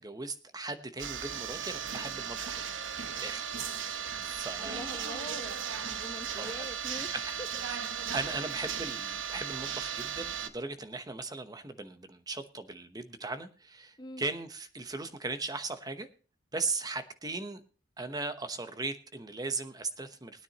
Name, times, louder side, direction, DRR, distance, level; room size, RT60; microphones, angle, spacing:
voice 1, 0.0-2.6 3.1-5.2 6.4-6.7 7.1-7.2 8.1-16.1 16.5-17.6 18.0-20.4, right 3 dB, 20° right, 10 dB, 1.0 m, -38 dB
sound 1, 1.0-10.5, right 8 dB, 75° right, 0.9 m, -36 dB
voice 2, 4.6-7.5 14.0-14.2, left 1 dB, 20° left, 7 dB, 1.1 m, -44 dB
20.5 x 9.6 x 2.9 m, 0.36 s
head